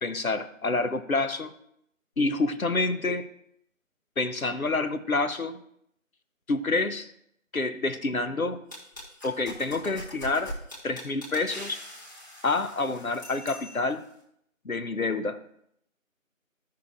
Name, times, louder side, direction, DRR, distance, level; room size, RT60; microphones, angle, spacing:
voice 1, 0.0-1.5 2.2-3.3 4.2-5.6 6.5-7.1 7.5-8.6 9.2-10.5 10.8-11.8 12.4-14.0 14.6-15.4, left 3 dB, 80° left, 9 dB, 1.1 m, -28 dB
sound 1, 8.7-14.0, equal, 15° left, 1.7 m, -42 dB
16.0 x 5.8 x 2.6 m, 0.73 s
figure-of-eight pair, 165°, 41 cm